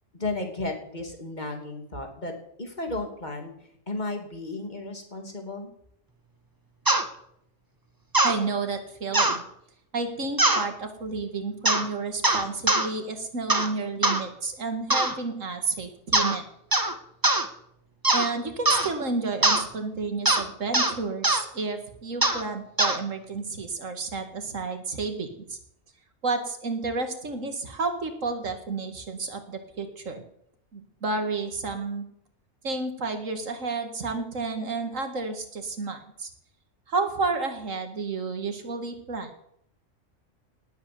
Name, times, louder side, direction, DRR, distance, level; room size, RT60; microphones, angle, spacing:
voice 1, 0.1-2.3 2.6-3.5 3.9-5.7, left 2 dB, 35° left, 4 dB, 2.9 m, -33 dB
sound 1, 6.9-7.0 8.1-8.4 9.1-9.4 10.4-10.6 11.6-11.9 12.2-12.9 13.5-13.7 14.0-14.2 14.9-15.2 16.1-16.4 16.7-16.9 17.2-17.4 18.0-18.3 18.7-18.9 19.4-19.6 20.3-20.4 20.7-20.9 21.2-21.4 22.2-22.4 22.8-23.0, right 2 dB, 15° right, 1.2 m, -22 dB
voice 2, 8.2-9.4 9.9-16.4 18.1-25.6 26.2-30.2 30.7-32.1 32.6-36.3 36.9-39.3, right 3 dB, 75° right, 7 dB, 2.4 m, -31 dB
18.5 x 8.1 x 7.8 m, 0.72 s
omnidirectional pair, 1.4 m